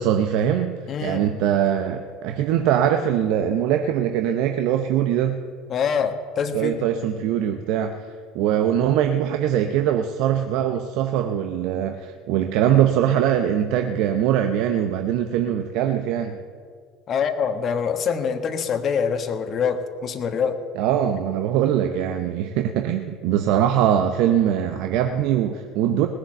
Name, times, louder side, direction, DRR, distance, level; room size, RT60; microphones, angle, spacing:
voice 1, 0.0-0.8 1.0-5.4 6.5-8.0 8.3-16.4 20.8-26.1, right 10 dB, 60° right, 6 dB, 0.8 m, -22 dB
voice 2, 0.9-1.2 5.7-6.8 17.1-20.6, left 6 dB, 45° left, 7 dB, 1.3 m, -25 dB
19.0 x 7.6 x 7.8 m, 2.1 s
hypercardioid pair, 70°, 0 cm